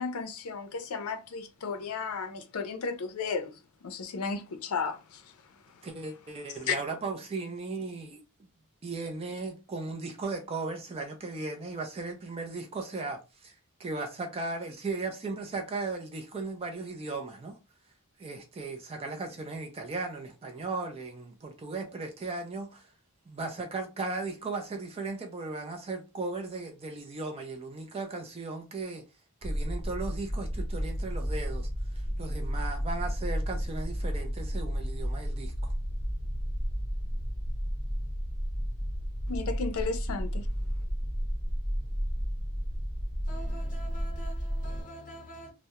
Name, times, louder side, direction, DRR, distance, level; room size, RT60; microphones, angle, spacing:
voice 1, 0.0-3.5 3.8-5.3 6.7-6.8 39.3-40.5, left 5 dB, 70° left, 0.5 m, -34 dB
voice 2, 5.8-8.2 8.8-17.6 18.2-22.9 23.3-29.0 29.4-31.7 31.9-35.7, right 3 dB, 25° right, 0.3 m, -36 dB
sound 1, 29.4-44.8, equal, 10° left, 0.7 m, -32 dB
voice 3, 43.2-45.5, right 1 dB, 40° left, 0.8 m, -45 dB
2.2 x 2.0 x 2.8 m
head